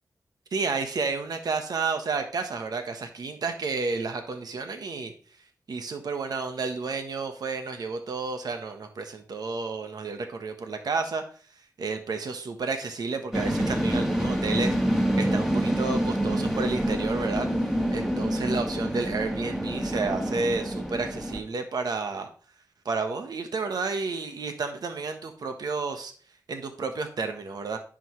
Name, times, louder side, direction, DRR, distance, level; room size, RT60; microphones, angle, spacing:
voice 1, 0.5-5.1 5.7-11.2 11.8-14.8 15.1-17.5 17.9-22.3 22.8-26.1 26.5-27.8, right 4 dB, 80° right, 6 dB, 1.2 m, -31 dB
sound 1, 13.3-21.4, equal, 5° right, 1.8 m, -27 dB
10.5 x 6.3 x 3.2 m, 0.41 s
cardioid pair, 70°, 7 cm